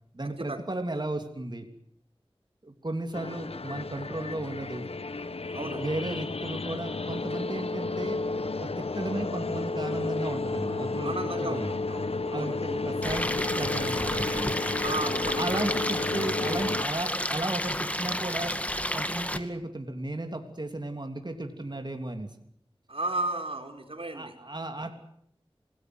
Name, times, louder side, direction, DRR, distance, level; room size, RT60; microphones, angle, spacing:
voice 1, 0.1-1.7 2.6-4.9 5.6-8.2 8.6-11.7 12.3-14.6 15.3-18.6 18.9-22.3 24.1-25.0, right 2 dB, 45° right, 5 dB, 3.1 m, -35 dB
sound 1, 3.1-16.8, left 3 dB, 85° left, 1.0 m, -32 dB
voice 2, 11.0-11.6 11.9-12.6 14.8-15.5 22.9-24.3, right 2 dB, 70° right, 5 dB, 4.5 m, -34 dB
Stream, 13.0-19.4, left 1 dB, 15° left, 2.2 m, -31 dB
27.0 x 19.0 x 8.1 m, 0.69 s
wide cardioid pair, 40°, 10 cm